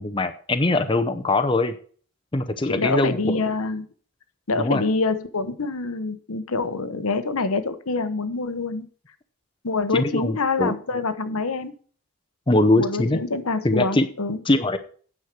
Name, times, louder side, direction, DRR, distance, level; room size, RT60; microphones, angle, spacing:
voice 1, 0.0-1.7 2.3-3.4 4.6-4.8 9.9-10.8 12.5-13.2 13.6-14.1 14.5-14.8, left 2 dB, 20° left, 7 dB, 0.7 m, -22 dB
voice 2, 2.7-3.9 4.5-8.9 9.6-11.7 12.7-14.4, left 3 dB, 80° left, 10 dB, 1.0 m, -26 dB
9.3 x 6.4 x 5.9 m, 0.44 s
head